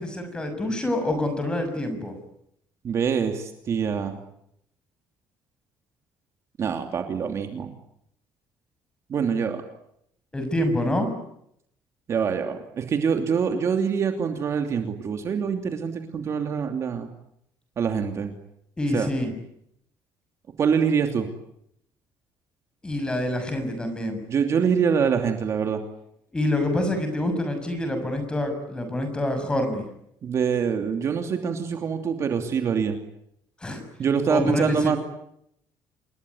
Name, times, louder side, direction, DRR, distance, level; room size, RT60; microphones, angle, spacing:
voice 1, 0.0-2.1 10.3-11.1 18.8-19.3 22.8-24.2 26.3-29.8 33.6-33.8 34.3-35.0, left 1 dB, 10° left, 7 dB, 6.5 m, -26 dB
voice 2, 2.8-4.2 6.6-7.7 9.1-9.6 12.1-17.1 17.8-18.3 18.9-19.1 20.6-21.3 24.3-25.8 30.2-33.0 34.0-35.0, right 6 dB, 40° right, 5 dB, 2.9 m, -25 dB
28.5 x 21.5 x 9.6 m, 0.76 s
cardioid pair, 165°, 8 cm